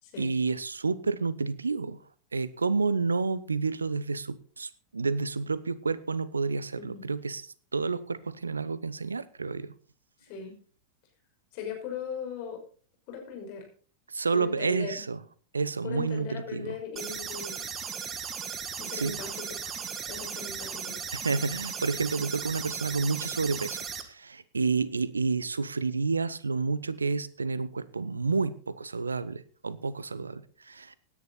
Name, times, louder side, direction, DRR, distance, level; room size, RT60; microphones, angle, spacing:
voice 1, 0.2-2.0 2.3-9.7 14.1-15.2 15.5-16.8 18.9-19.2 21.1-31.0, right 4 dB, 75° right, 19 dB, 0.8 m, -30 dB
voice 2, 10.2-10.5 11.5-12.6 13.1-13.7 14.3-15.0 15.8-17.7 18.8-19.7 20.1-21.0, left 6 dB, 45° left, 2 dB, 5.7 m, -39 dB
sound 1, 17.0-24.0, right 6 dB, 25° right, 1.7 m, -37 dB
17.0 x 10.0 x 4.1 m, 0.41 s
figure-of-eight pair, 90°, 0 cm